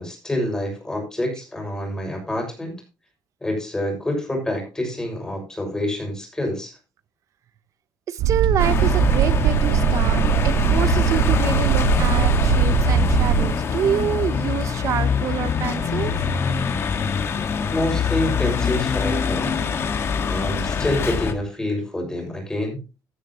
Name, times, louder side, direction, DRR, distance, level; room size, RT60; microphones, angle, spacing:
voice 1, 0.0-2.8 3.4-6.7 17.7-19.6 20.3-22.8, left 1 dB, 10° left, 2 dB, 6.2 m, -27 dB
voice 2, 8.1-16.1, right 10 dB, 45° right, 15 dB, 0.8 m, -27 dB
sound 1, 8.2-13.5, right 9 dB, 85° right, 0.8 m, -20 dB
sound 2, 8.6-21.3, left 6 dB, 35° left, 1.7 m, -24 dB
16.0 x 10.0 x 3.0 m, 0.29 s
cardioid pair, 175°, 7 cm